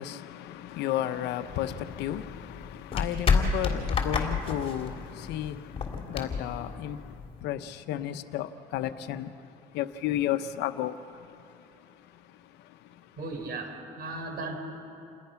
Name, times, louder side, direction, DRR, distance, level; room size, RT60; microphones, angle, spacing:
voice 1, 0.0-9.3 9.7-13.1, left 12 dB, 85° left, 1.0 m, -34 dB
sound 1, 1.4-7.4, left 5 dB, 35° left, 3.3 m, -30 dB
voice 2, 13.2-14.6, right 3 dB, 65° right, 4.8 m, -36 dB
29.0 x 20.5 x 5.9 m
cardioid pair, 110°, 17 cm